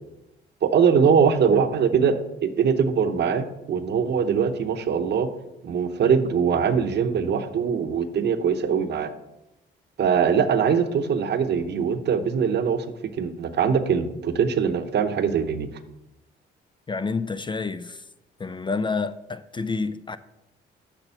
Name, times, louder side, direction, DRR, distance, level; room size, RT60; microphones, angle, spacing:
voice 1, 0.6-5.3 5.6-9.1 10.0-15.7, right 6 dB, 60° right, 0.8 m, -22 dB
voice 2, 16.9-18.0 18.4-20.2, left 4 dB, 25° left, 0.4 m, -29 dB
6.9 x 5.9 x 5.7 m
cardioid pair, 90°, 20 cm